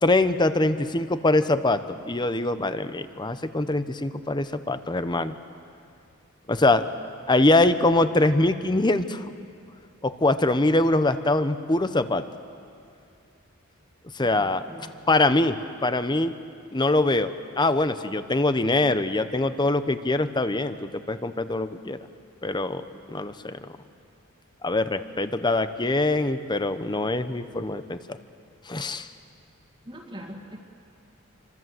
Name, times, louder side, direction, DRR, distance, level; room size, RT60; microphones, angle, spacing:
voice 1, 0.0-5.3 6.5-6.9 7.3-9.2 10.0-12.2 14.1-14.6 15.1-16.3 16.7-22.0 22.4-23.7 24.6-28.2 28.7-29.1, left 2 dB, 20° left, 11 dB, 0.9 m, -23 dB
voice 2, 14.2-15.0 29.8-30.6, equal, 25° right, -4 dB, 2.1 m, -42 dB
26.5 x 25.5 x 7.9 m, 2.4 s
head